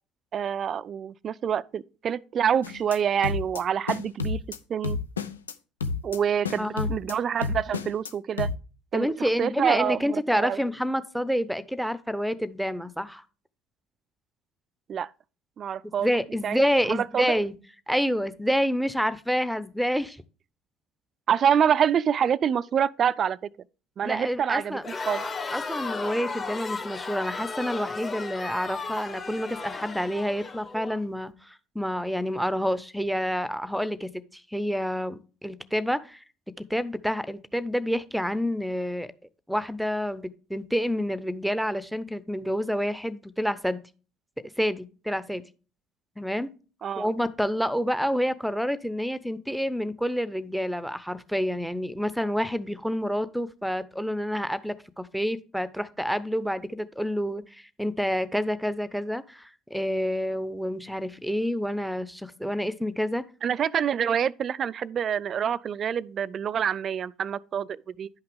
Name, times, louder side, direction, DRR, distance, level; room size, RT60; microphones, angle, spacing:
voice 1, 0.3-4.4 4.7-5.0 6.0-8.5 8.9-10.6 14.9-15.1 15.6-16.1 16.4-16.6 16.9-17.3 21.3-23.4 24.0-24.8 25.1-25.2 46.8-47.1 63.4-68.1, right 8 dB, 40° right, 0.4 m, -26 dB
sound 1, 2.6-3.0 3.2-3.6 3.9-4.6 4.8-5.5 5.8-6.2 6.4-7.1 7.4-8.1 8.4-8.5, left 4 dB, 85° left, 0.6 m, -30 dB
voice 2, 6.6-6.9 8.9-13.2 16.0-17.5 17.9-20.2 24.0-24.8 25.5-36.2 36.6-39.1 39.5-43.8 44.6-45.4 46.2-46.5 47.0-63.2, equal, ahead, 0.8 m, -28 dB
Crowd, 24.8-31.0, left 4 dB, 30° left, 2.0 m, -35 dB
11.0 x 5.7 x 3.5 m
figure-of-eight pair, 60°, 0 cm